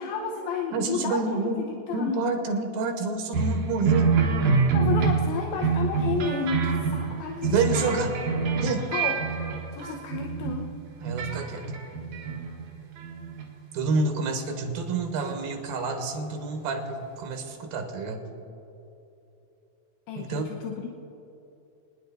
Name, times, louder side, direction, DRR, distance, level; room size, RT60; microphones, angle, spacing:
voice 1, 0.0-1.4 1.7-2.2 4.7-8.0 8.9-9.2 9.7-10.7 20.1-20.9, left 5 dB, 80° left, 1 dB, 2.6 m, -32 dB
voice 2, 0.7-1.6 1.9-4.1 7.4-8.1 8.6-8.8 11.0-11.6 13.7-18.2 20.2-20.5, right 3 dB, 80° right, 4 dB, 3.2 m, -28 dB
sound 1, 3.3-10.6 11.0-12.7 13.0-13.5 14.3-14.4, right 5 dB, 60° right, 2.4 m, -26 dB
25.5 x 10.0 x 4.1 m, 2.9 s
omnidirectional pair, 4.2 m